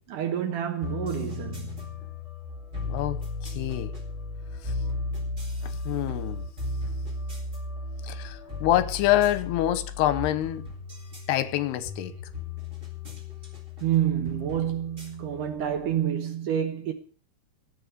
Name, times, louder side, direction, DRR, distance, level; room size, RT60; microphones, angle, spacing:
voice 1, 0.1-1.9 13.8-16.9, right 10 dB, 65° right, 2.3 m, -28 dB
sound 1, 0.8-16.1, left 3 dB, 15° right, 3.9 m, -35 dB
voice 2, 2.9-3.9 5.9-6.4 8.1-10.6 11.3-12.1, left 13 dB, 90° left, 3.0 m, -26 dB
14.5 x 8.4 x 6.7 m
omnidirectional pair, 4.7 m